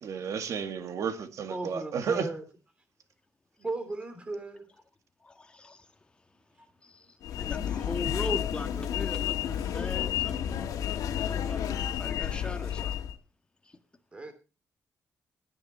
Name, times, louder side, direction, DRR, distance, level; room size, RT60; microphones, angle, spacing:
voice 1, 0.0-2.3, right 6 dB, 65° right, 2.0 m, -32 dB
voice 2, 1.5-2.4 3.6-4.7 14.1-14.3, right 2 dB, 20° right, 3.0 m, -36 dB
voice 3, 5.2-5.9 6.8-11.7 12.0-12.9 13.6-13.8, left 2 dB, 15° left, 1.5 m, -40 dB
sound 1, 7.2-13.2, left 10 dB, 90° left, 1.8 m, -31 dB
16.5 x 9.8 x 4.3 m
cardioid pair, 150°, 6 cm